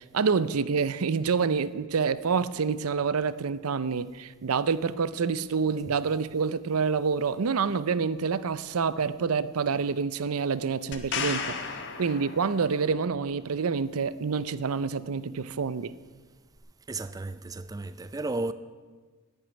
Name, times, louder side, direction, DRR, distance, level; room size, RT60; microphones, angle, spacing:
voice 1, 0.0-11.6 12.0-16.0, right 5 dB, 90° right, 0.6 m, -27 dB
sound 1, 10.9-12.9 16.6-16.7, left 6 dB, 55° left, 1.4 m, -34 dB
voice 2, 16.9-18.5, right 2 dB, 15° right, 0.4 m, -33 dB
11.0 x 9.0 x 9.6 m
head